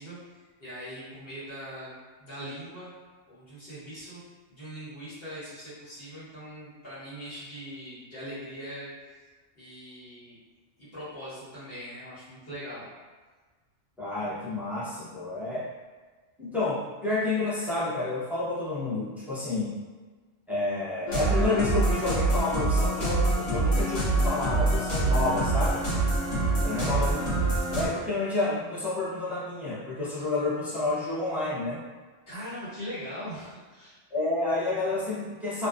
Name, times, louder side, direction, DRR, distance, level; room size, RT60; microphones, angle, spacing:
voice 1, 0.0-1.9 2.2-2.9 3.3-4.2 4.5-9.3 9.5-10.4 10.8-12.9 26.6-27.0 32.3-34.0, equal, 55° left, -11 dB, 1.3 m, -41 dB
voice 2, 14.0-15.7 16.4-19.7 20.5-25.8 26.6-27.2 27.6-31.8 34.1-35.7, left 2 dB, ahead, -10 dB, 0.4 m, -30 dB
sound 1, 21.1-27.9, right 2 dB, 90° left, 1.1 m, -25 dB
2.7 x 2.3 x 2.4 m, 1.4 s
omnidirectional pair, 1.3 m